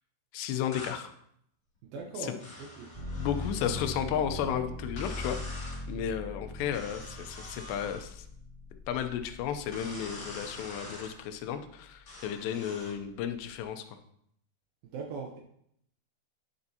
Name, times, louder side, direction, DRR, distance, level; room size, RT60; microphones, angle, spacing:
voice 1, 0.3-1.1 2.2-2.4 3.2-8.3 8.9-14.0, left 9 dB, 80° left, 8 dB, 2.7 m, -33 dB
sound 1, 0.7-1.0 2.4-3.6 5.0-5.8 6.7-8.0 9.7-11.1 12.1-13.0, left 2 dB, 40° left, 2.5 m, -45 dB
voice 2, 1.8-2.9 14.8-15.4, right 4 dB, 80° right, 1 dB, 2.1 m, -40 dB
sound 2, 2.9-10.8 11.2-12.0, left 2 dB, 10° left, 1.8 m, -41 dB
9.6 x 7.0 x 2.8 m, 0.71 s
omnidirectional pair, 5.2 m